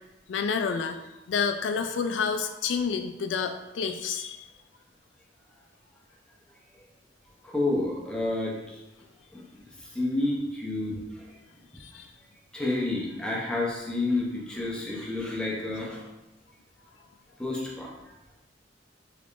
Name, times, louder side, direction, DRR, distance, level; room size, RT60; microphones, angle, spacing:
voice 1, 0.3-1.0 1.3-4.5 11.8-12.1, left 6 dB, 80° left, 8 dB, 0.3 m, -29 dB
voice 2, 7.4-8.7 9.3-9.4 9.9-11.0 12.5-16.0 17.4-17.9, left 2 dB, 5° left, -4 dB, 0.7 m, -29 dB
3.4 x 3.2 x 2.5 m, 0.98 s
head